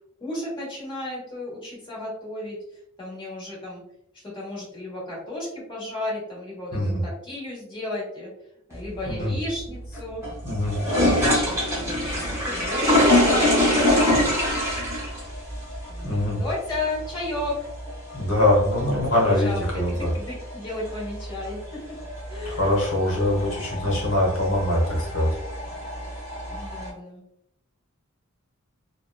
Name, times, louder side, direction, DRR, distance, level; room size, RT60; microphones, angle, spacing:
voice 1, 0.2-2.6 3.0-3.8 4.3-8.3 8.7-10.2 10.7-14.4 15.9-17.7 19.3-21.6 22.3-22.7 26.5-27.2, left 2 dB, 20° left, -6 dB, 1.2 m, -33 dB
voice 2, 6.7-7.0 9.1-9.4 10.4-10.8 16.0-16.4 18.1-20.1 22.4-25.4, left 1 dB, 65° left, -2 dB, 1.2 m, -23 dB
sound 1, 8.7-26.9, left 1 dB, 15° right, 0.9 m, -26 dB
2.9 x 2.2 x 2.3 m, 0.78 s
head